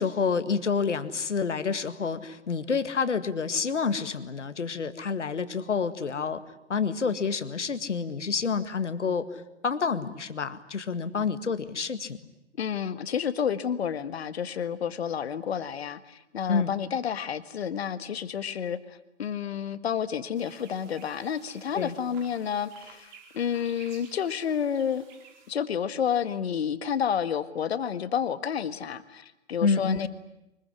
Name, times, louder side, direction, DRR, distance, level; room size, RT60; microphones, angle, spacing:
voice 1, 0.0-6.4 6.7-9.3 9.6-12.2 16.5-16.8 21.7-22.0 29.6-30.1, left 5 dB, 75° left, 12 dB, 2.0 m, -28 dB
voice 2, 12.6-25.0 25.5-30.1, left 8 dB, 60° left, 13 dB, 1.7 m, -30 dB
sound 1, 20.4-25.5, right 6 dB, 40° right, 4.6 m, -53 dB
24.5 x 22.0 x 9.8 m, 0.91 s
figure-of-eight pair, 120°, 36 cm